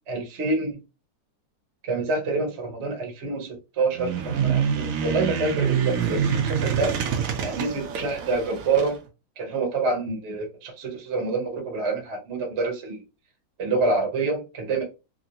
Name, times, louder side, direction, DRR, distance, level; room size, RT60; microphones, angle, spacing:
voice 1, 0.1-0.8 1.8-7.0 7.4-8.9 9.4-13.0 13.6-14.8, right 3 dB, 45° right, 1 dB, 1.0 m, -27 dB
sound 1, 3.9-8.9, right 7 dB, 80° right, 0.7 m, -26 dB
2.9 x 2.6 x 2.7 m, 0.29 s
omnidirectional pair, 2.1 m